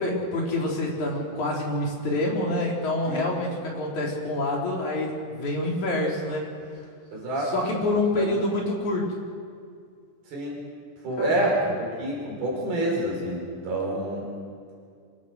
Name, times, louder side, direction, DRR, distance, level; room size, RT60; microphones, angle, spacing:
voice 1, 0.0-6.5 7.4-9.1 11.2-11.5, left 1 dB, 45° left, -2 dB, 5.1 m, -27 dB
voice 2, 7.1-7.5 8.2-8.4 10.3-10.5 11.0-14.3, right 1 dB, 65° right, -2 dB, 6.6 m, -27 dB
26.5 x 23.0 x 6.4 m, 2.2 s
omnidirectional pair, 4.8 m